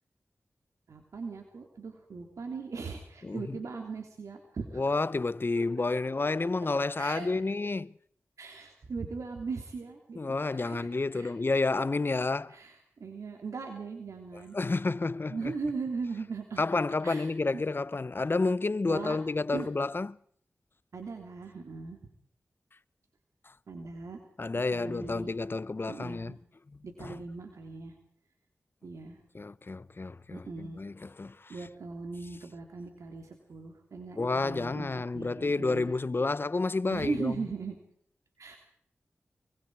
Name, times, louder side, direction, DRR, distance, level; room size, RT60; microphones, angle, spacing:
voice 1, 0.9-4.8 5.5-5.6 7.0-7.3 8.4-11.4 12.5-14.6 15.3-16.6 17.0-17.6 18.9-19.2 19.5-19.7 20.9-22.0 23.7-24.2 24.7-25.3 25.9-26.4 26.8-27.9 28.8-29.2 30.3-30.8 31.5-35.9 36.9-37.7 38.4-38.6, right 4 dB, 85° right, 3.0 m, -39 dB
voice 2, 3.2-3.6 4.7-7.9 10.1-12.6 14.3-15.5 16.6-20.2 24.4-26.4 27.0-27.2 29.3-31.6 34.2-37.4, left 3 dB, 45° left, 0.8 m, -30 dB
24.0 x 23.5 x 4.8 m
cardioid pair, 45°, 5 cm